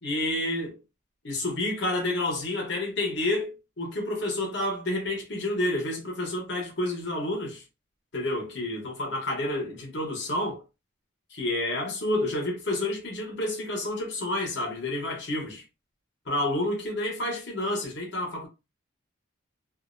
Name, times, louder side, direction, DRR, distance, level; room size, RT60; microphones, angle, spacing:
voice 1, 0.0-0.8 1.2-7.6 8.1-10.6 11.3-15.6 16.3-18.5, left 1 dB, 55° left, 0.9 m, -29 dB
2.5 x 2.0 x 2.4 m
head